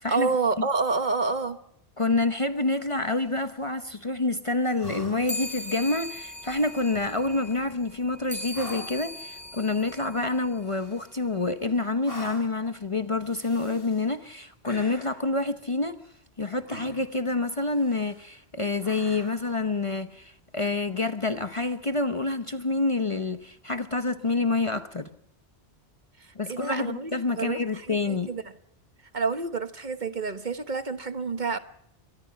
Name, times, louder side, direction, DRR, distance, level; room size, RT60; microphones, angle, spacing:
voice 1, 0.1-1.6 26.2-28.4 29.1-31.6, right 4 dB, 45° right, 1.2 m, -29 dB
voice 2, 2.0-15.9 16.4-25.1 26.4-28.3, left 3 dB, 30° left, 0.9 m, -27 dB
sound 1, 2.9-3.6 4.8-5.5 6.5-7.2 8.5-9.1 10.6-11.4 12.0-12.6 13.2-14.1 14.6-15.3 16.7-17.2 17.7-18.3 18.8-19.6 21.4-21.5, left 1 dB, 55° left, 3.9 m, -45 dB
sound 2, 5.3-11.1, left 1 dB, 5° right, 5.2 m, -40 dB
24.0 x 20.0 x 5.8 m
omnidirectional pair, 1.2 m